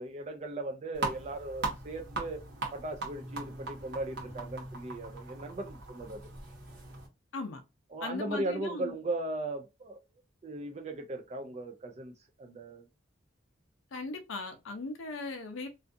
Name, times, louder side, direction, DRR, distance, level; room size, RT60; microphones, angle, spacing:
voice 1, 0.0-2.4 2.7-6.2 7.9-10.0 10.4-12.1 12.4-12.8, right 2 dB, 35° right, 0.3 m, -37 dB
sound 1, 0.9-7.1, right 3 dB, 55° right, 0.9 m, -39 dB
voice 2, 8.0-9.0 13.9-15.7, left 3 dB, 85° left, 0.5 m, -38 dB
2.5 x 2.3 x 2.4 m
head